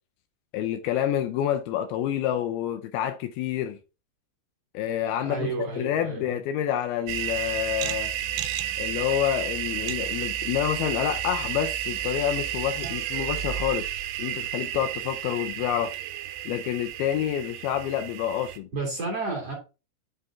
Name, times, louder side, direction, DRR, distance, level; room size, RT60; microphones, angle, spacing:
voice 1, 0.5-3.8 4.7-8.1 8.8-13.9 14.2-15.9 16.5-18.7, left 10 dB, 80° left, 2.4 m, -28 dB
voice 2, 5.2-6.4 18.7-19.5, right 3 dB, 45° right, 2.5 m, -31 dB
sound 1, 7.1-18.6, right 11 dB, 85° right, 2.7 m, -32 dB
8.3 x 3.8 x 3.5 m
omnidirectional pair, 4.7 m